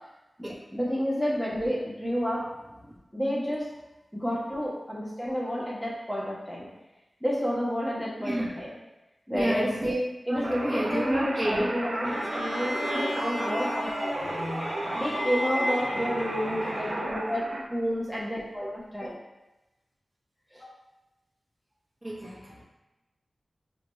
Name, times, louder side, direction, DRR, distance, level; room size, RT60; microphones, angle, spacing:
voice 1, 0.4-2.4 3.1-3.6 4.1-6.7 7.2-8.7 9.3-9.7 10.3-14.4 14.9-19.2 20.5-20.7, equal, 5° left, -6 dB, 1.0 m, -30 dB
voice 2, 9.3-9.9 10.3-11.8 22.0-22.6, right 1 dB, 35° right, -6 dB, 1.0 m, -30 dB
sound 1, 10.4-17.6, right 1 dB, 60° right, 0.5 m, -33 dB
sound 2, 12.0-17.3, left 1 dB, 70° left, 0.5 m, -34 dB
4.8 x 2.2 x 3.1 m, 1.0 s
wide cardioid pair, 70°, 0 cm